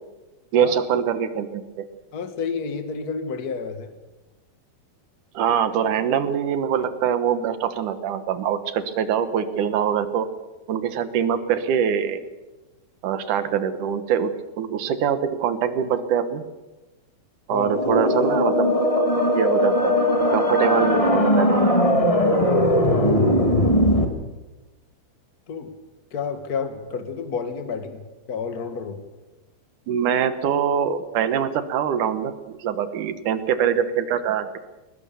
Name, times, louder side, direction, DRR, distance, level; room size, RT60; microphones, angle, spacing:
voice 1, 0.5-1.9 5.3-10.3 10.7-12.2 13.0-16.4 17.5-19.1 19.3-20.0 20.3-21.9 29.9-34.6, right 8 dB, 65° right, 11 dB, 2.5 m, -24 dB
voice 2, 2.1-3.9 17.5-17.8 22.4-22.9 25.5-25.7 26.1-28.0 28.3-29.0, left 5 dB, 40° left, 8 dB, 1.4 m, -30 dB
sound 1, 17.6-24.0, left 1 dB, 15° left, 1.3 m, -19 dB
22.0 x 20.0 x 7.0 m, 1.1 s
omnidirectional pair, 4.4 m